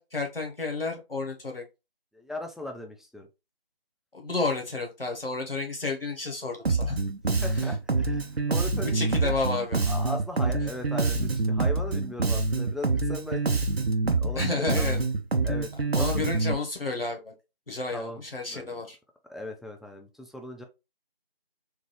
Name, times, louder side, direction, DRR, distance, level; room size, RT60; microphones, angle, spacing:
voice 1, 0.0-1.6 4.1-7.0 7.5-7.7 8.9-9.8 14.3-15.0 15.9-17.3 17.7-19.0, left 3 dB, 65° left, 2 dB, 1.2 m, -31 dB
voice 2, 2.1-3.3 7.4-9.3 9.8-13.6 14.2-15.0 15.4-15.7 16.0-16.3 17.9-18.2 18.5-18.8 19.3-20.6, left 1 dB, ahead, 4 dB, 0.4 m, -38 dB
Bass guitar, 6.6-16.5, right 3 dB, 80° right, 0.7 m, -26 dB
3.7 x 2.3 x 3.2 m, 0.26 s
figure-of-eight pair, 175°, 30 cm